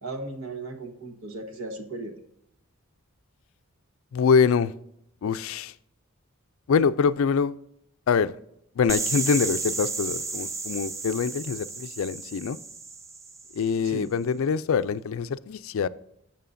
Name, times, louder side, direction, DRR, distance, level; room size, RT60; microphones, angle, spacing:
voice 1, 0.0-2.1 13.8-14.1, right 2 dB, 70° right, 6 dB, 1.3 m, -36 dB
voice 2, 4.1-4.7 5.2-5.7 6.7-7.5 8.1-8.3 8.8-12.6 13.5-15.9, left 6 dB, 65° left, 15 dB, 0.4 m, -24 dB
sound 1, 8.9-13.7, right 4 dB, 15° right, 0.3 m, -33 dB
12.5 x 7.5 x 2.6 m, 0.76 s
head